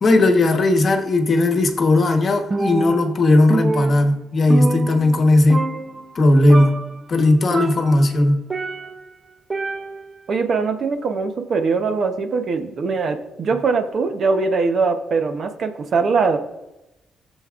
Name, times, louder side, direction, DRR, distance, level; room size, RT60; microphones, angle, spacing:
voice 1, 0.0-5.6 6.1-6.8 7.1-8.4, left 2 dB, 40° left, 5 dB, 1.1 m, -16 dB
Percussion, 2.5-3.2 3.5-5.3 5.5-6.2 6.5-7.0 7.5-9.1 9.5-10.2, right 3 dB, 25° right, 0.5 m, -27 dB
voice 2, 10.3-16.4, right 4 dB, 50° right, 6 dB, 0.8 m, -21 dB
18.0 x 7.1 x 2.5 m, 0.94 s
cardioid pair, 135°, 0 cm